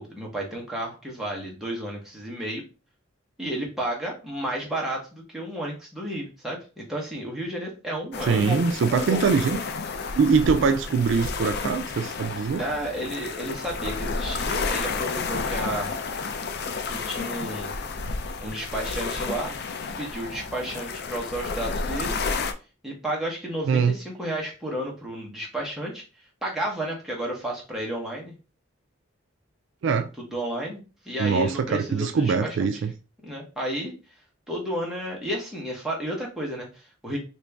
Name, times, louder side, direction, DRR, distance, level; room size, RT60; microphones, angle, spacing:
voice 1, 0.0-2.6 3.4-9.2 12.6-16.0 16.9-17.7 18.4-19.5 20.0-22.2 22.8-26.0 26.4-28.4 30.2-32.7 33.2-33.9 34.5-37.2, right 1 dB, ahead, 1.0 m, -32 dB
sound 1, 8.1-22.5, left 4 dB, 50° left, 0.4 m, -31 dB
voice 2, 8.3-9.6 10.2-12.6 23.7-23.9 29.8-30.1 31.2-32.9, right 5 dB, 60° right, 0.3 m, -23 dB
2.9 x 2.6 x 3.4 m
head